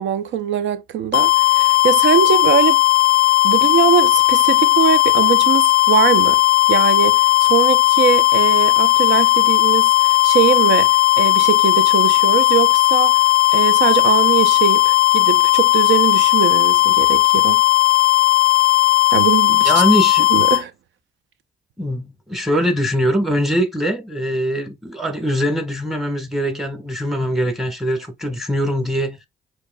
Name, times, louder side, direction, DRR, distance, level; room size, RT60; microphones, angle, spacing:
voice 1, 0.0-2.8 3.4-6.4 6.7-13.2 13.5-17.6 19.1-19.7 20.3-20.7, right 9 dB, 70° right, 0.7 m, -21 dB
sound 1, 1.1-20.6, left 17 dB, 45° left, 0.4 m, -15 dB
voice 2, 19.6-20.3 21.8-29.2, equal, ahead, 1.4 m, -22 dB
6.7 x 2.9 x 2.3 m
cardioid pair, 90°, 20 cm